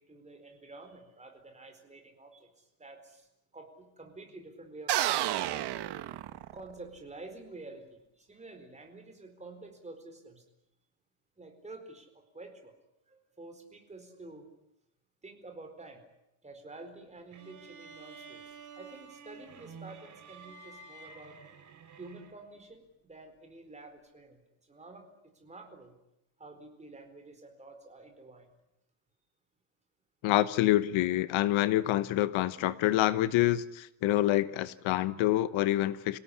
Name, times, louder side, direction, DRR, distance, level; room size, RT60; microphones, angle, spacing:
voice 1, 0.0-3.3 3.5-5.0 6.5-10.4 11.4-12.7 13.1-14.5 15.2-16.0 16.4-21.4 22.0-25.9 26.4-28.5, right 2 dB, 15° right, 5 dB, 4.4 m, -49 dB
sound 1, 4.9-6.8, right 13 dB, 55° right, 1.3 m, -31 dB
sound 2, 17.3-22.6, right 5 dB, 40° right, 3.3 m, -50 dB
voice 2, 30.2-36.2, left 14 dB, 75° left, 15 dB, 1.1 m, -27 dB
27.5 x 17.5 x 10.0 m, 0.87 s
cardioid pair, 170°, 47 cm